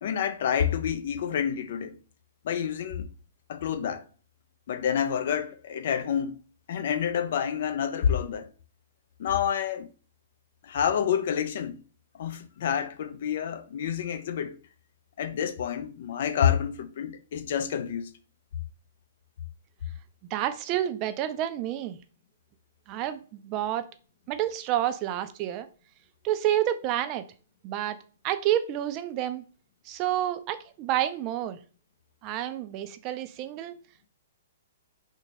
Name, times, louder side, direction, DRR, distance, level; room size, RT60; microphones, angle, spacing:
voice 1, 0.0-1.9 2.4-3.1 3.5-4.0 4.7-6.4 6.7-8.5 9.2-9.9 10.6-11.8 12.2-14.6 15.2-18.1, left 8 dB, 60° left, 0.4 m, -28 dB
voice 2, 20.3-22.0 22.9-23.8 24.3-25.7 26.2-27.2 27.6-28.0 28.2-29.4 29.9-31.6 32.2-33.8, right 12 dB, 35° right, 0.3 m, -29 dB
3.6 x 2.1 x 3.2 m
hypercardioid pair, 130°, 0 cm